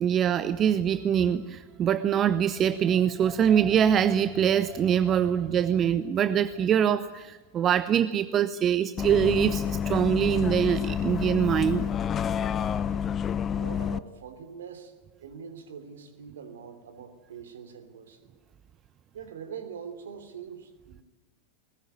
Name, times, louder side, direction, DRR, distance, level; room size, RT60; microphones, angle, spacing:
voice 1, 0.0-11.9, right 9 dB, 30° right, 14 dB, 0.8 m, -24 dB
Bus, 9.0-14.0, left 8 dB, 25° left, 0.7 m, -29 dB
voice 2, 12.5-13.0 13.5-14.9 15.2-18.3 19.1-21.0, right 7 dB, 60° right, 9 dB, 3.0 m, -43 dB
20.5 x 19.5 x 9.5 m, 1.1 s
figure-of-eight pair, 90°, 0 cm